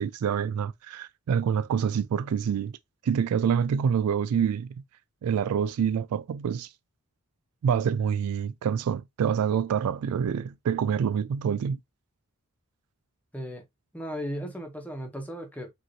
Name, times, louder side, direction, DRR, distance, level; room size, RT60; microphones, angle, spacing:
voice 1, 0.0-2.8 3.0-4.8 5.2-6.7 7.6-11.8, right 7 dB, 75° right, 0.3 m, -26 dB
voice 2, 13.9-15.7, equal, 5° left, 1.1 m, -36 dB
5.2 x 2.8 x 3.0 m
head